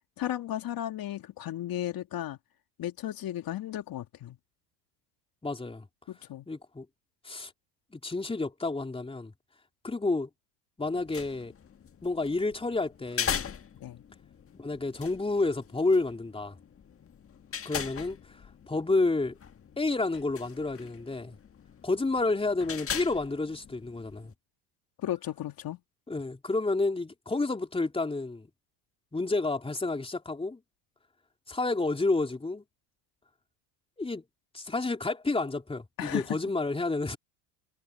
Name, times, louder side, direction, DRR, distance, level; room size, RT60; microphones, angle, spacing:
voice 1, 0.2-2.4 2.8-4.4 6.1-6.5 13.8-14.0 25.0-25.8 36.0-36.4, left 12 dB, 45° left, 2.5 m, -34 dB
voice 2, 5.4-5.9 6.5-6.9 7.2-7.5 7.9-9.3 9.8-10.3 10.8-11.5 12.0-13.4 14.6-16.6 17.7-18.4 18.7-19.3 19.8-21.4 21.8-24.3 26.1-28.5 29.1-30.6 31.5-32.6 34.0-34.2 34.5-37.2, left 3 dB, 10° left, 3.5 m, -30 dB
sound 1, 10.9-24.3, left 8 dB, 25° left, 1.7 m, -40 dB
hypercardioid pair, 90°, 49 cm